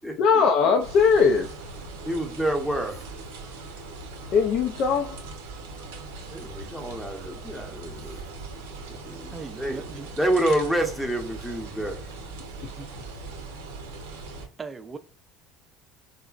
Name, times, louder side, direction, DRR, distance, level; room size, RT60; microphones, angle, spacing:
voice 1, 0.2-1.6 4.3-5.2, left 5 dB, 60° left, 0.4 m, -20 dB
sound 1, 0.8-14.5, right 3 dB, 90° right, 0.7 m, -40 dB
voice 2, 2.0-3.1 3.4-3.5 6.3-8.3 8.9-9.8 10.2-12.1, right 1 dB, 5° left, 0.8 m, -28 dB
voice 3, 9.3-10.1 12.6-13.1 14.6-15.0, right 4 dB, 25° right, 0.4 m, -39 dB
3.8 x 2.0 x 2.4 m
supercardioid pair, 85°, 0 cm